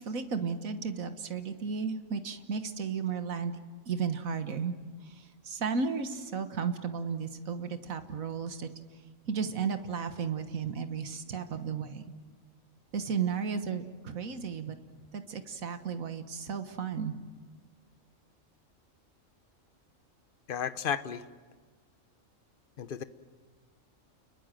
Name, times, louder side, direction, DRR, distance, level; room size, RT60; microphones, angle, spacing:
voice 1, 0.0-3.6 3.8-4.7 5.0-8.7 9.2-12.0 12.9-14.8 15.1-17.1, right 6 dB, 85° right, 8 dB, 1.8 m, -34 dB
voice 2, 20.5-21.2 22.8-23.0, left 8 dB, 45° left, 13 dB, 0.9 m, -33 dB
29.5 x 21.0 x 7.6 m, 1.5 s
omnidirectional pair, 1.4 m